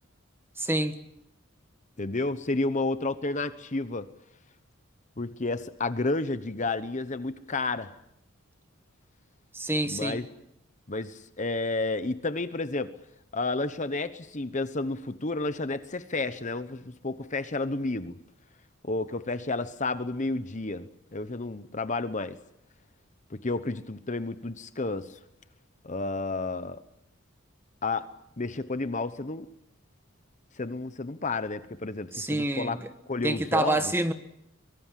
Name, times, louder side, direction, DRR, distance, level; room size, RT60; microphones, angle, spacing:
voice 1, 0.6-1.0 9.5-10.2 32.1-32.7 33.2-34.1, right 1 dB, 10° right, 9 dB, 1.4 m, -27 dB
voice 2, 2.0-4.1 5.2-7.9 9.8-10.3 10.9-12.9 13.3-18.1 18.8-22.4 23.3-25.2 25.8-26.8 27.8-28.1 28.4-29.5 30.6-32.8 33.1-33.9, left 3 dB, 35° left, 12 dB, 1.0 m, -31 dB
24.0 x 23.0 x 7.6 m, 0.78 s
head